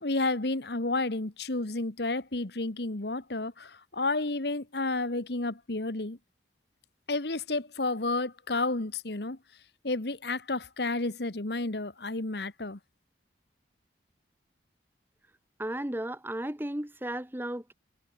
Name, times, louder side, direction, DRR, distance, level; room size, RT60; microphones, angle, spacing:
voice 1, 0.0-6.2 7.1-9.4 9.8-12.8, left 2 dB, 60° left, 1.5 m, -31 dB
voice 2, 15.6-17.7, right 1 dB, 10° right, 1.0 m, -34 dB
head